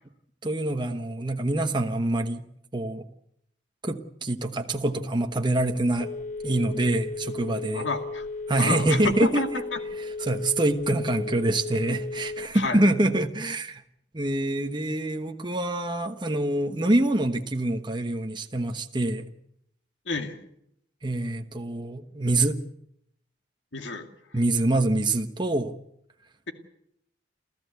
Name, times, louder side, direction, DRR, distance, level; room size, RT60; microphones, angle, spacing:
voice 1, 0.4-2.4 2.7-3.0 3.8-6.1 6.4-7.9 8.5-9.6 10.0-13.8 14.1-19.3 21.0-22.6 24.3-25.8, right 1 dB, 25° right, 5 dB, 1.1 m, -25 dB
Telephone, 5.4-12.8, left 3 dB, 45° left, 1.0 m, -35 dB
voice 2, 7.7-8.2 8.6-9.8 12.5-12.8 20.1-20.4 23.7-24.1, left 3 dB, 75° left, 6 dB, 2.2 m, -29 dB
29.0 x 14.0 x 8.1 m, 0.76 s
head